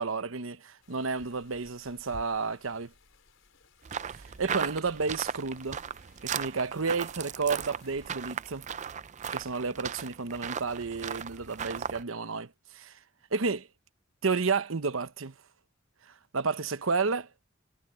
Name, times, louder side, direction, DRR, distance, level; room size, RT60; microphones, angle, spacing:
voice 1, 0.0-2.9 4.1-5.8 6.2-8.6 9.3-12.9 13.3-13.7 14.2-15.3 16.3-17.3, right 4 dB, 85° right, 0.9 m, -31 dB
sound 1, 0.8-8.1, left 1 dB, 75° left, 4.4 m, -57 dB
sound 2, 3.8-12.0, right 7 dB, 35° right, 0.5 m, -37 dB
head